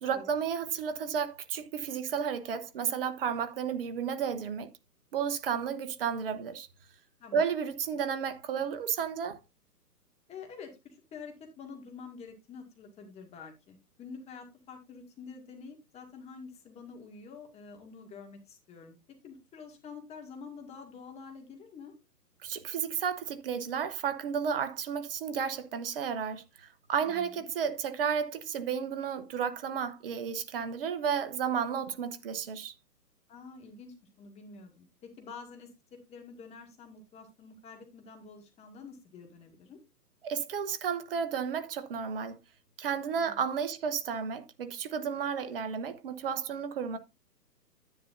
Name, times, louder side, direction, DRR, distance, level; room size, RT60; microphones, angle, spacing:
voice 1, 0.0-4.7 5.1-6.7 7.3-9.4 22.4-32.7 40.2-42.4 42.8-47.0, right 7 dB, 35° right, 1.0 m, -32 dB
voice 2, 10.3-19.0 19.2-21.9 27.0-27.5 33.3-39.8 43.2-43.4, left 5 dB, 15° left, 1.9 m, -48 dB
10.5 x 9.1 x 2.6 m
figure-of-eight pair, 135°, 48 cm